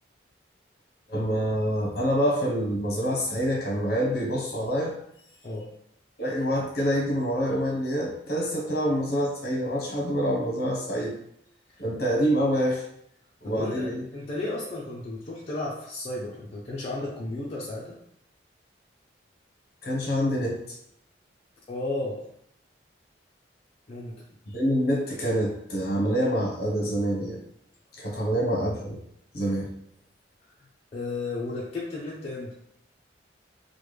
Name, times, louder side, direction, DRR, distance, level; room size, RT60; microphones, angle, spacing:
voice 1, 1.1-4.9 6.2-11.2 11.8-12.8 13.4-14.0 19.8-20.6 24.5-27.4 28.0-29.0 29.3-29.7, equal, 55° left, -2 dB, 0.8 m, -26 dB
voice 2, 13.4-18.0 21.7-22.2 23.9-24.2 28.1-28.4 30.9-32.5, left 2 dB, 35° left, -6 dB, 0.4 m, -33 dB
3.2 x 2.1 x 3.2 m, 0.73 s
head